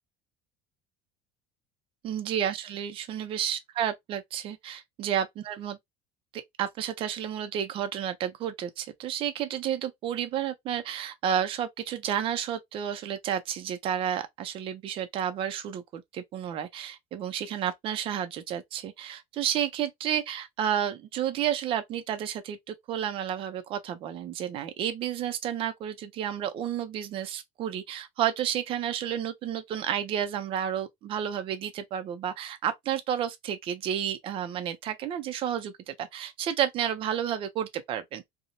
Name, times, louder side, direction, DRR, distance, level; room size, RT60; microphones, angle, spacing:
voice 1, 2.0-5.8 6.3-38.2, right 9 dB, 30° right, 0.4 m, -31 dB
2.5 x 2.0 x 2.7 m
cardioid pair, 175°, 19 cm